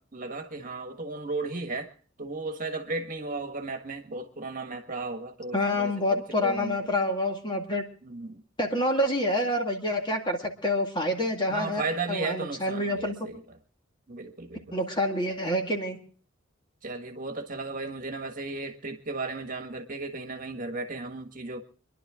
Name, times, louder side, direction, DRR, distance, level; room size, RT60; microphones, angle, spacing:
voice 1, 0.0-1.9 2.2-6.8 8.0-8.4 11.5-13.4 14.1-14.8 16.8-21.6, right 3 dB, 45° right, 1.6 m, -35 dB
voice 2, 5.5-7.8 8.6-11.8 12.1-13.2 14.7-16.0, left 1 dB, 25° left, 2.1 m, -27 dB
26.0 x 11.5 x 3.7 m
head